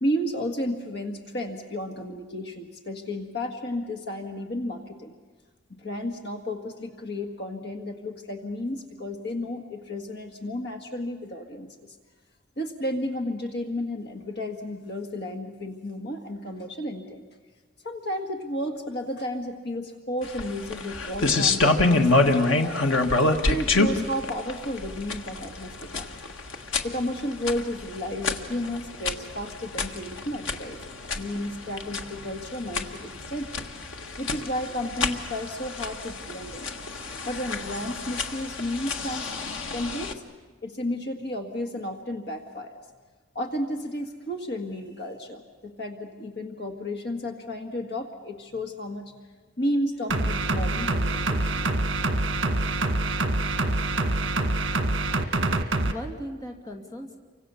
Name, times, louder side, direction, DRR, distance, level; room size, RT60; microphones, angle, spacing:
voice 1, 0.0-5.1 5.8-12.0 12.6-17.2 17.8-22.8 23.5-26.1 26.8-33.7 34.2-36.7 37.3-39.3 39.7-40.1 40.6-42.8 43.4-49.2 49.6-51.6, left 1 dB, 55° left, 4 dB, 1.8 m, -32 dB
sound 1, 20.2-40.1, left 3 dB, 90° left, 1.7 m, -27 dB
sound 2, 50.1-55.9, right 2 dB, 70° right, 1.8 m, -25 dB
voice 2, 55.6-57.2, equal, 20° left, 2 dB, 2.6 m, -39 dB
29.5 x 25.0 x 7.1 m, 1.4 s
head